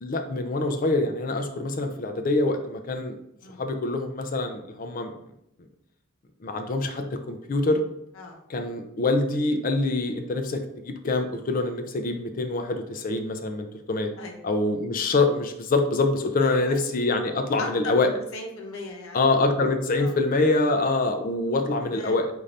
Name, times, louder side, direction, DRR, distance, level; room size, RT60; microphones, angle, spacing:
voice 1, 0.0-3.1 3.6-5.1 6.4-7.8 8.5-14.1 14.4-18.1 19.1-22.3, left 2 dB, 40° left, 6 dB, 0.4 m, -25 dB
voice 2, 14.2-14.5 16.4-16.8 17.6-19.2 20.0-20.1 21.8-22.2, left 2 dB, 85° left, 0 dB, 0.8 m, -37 dB
3.9 x 2.6 x 3.2 m, 0.78 s
head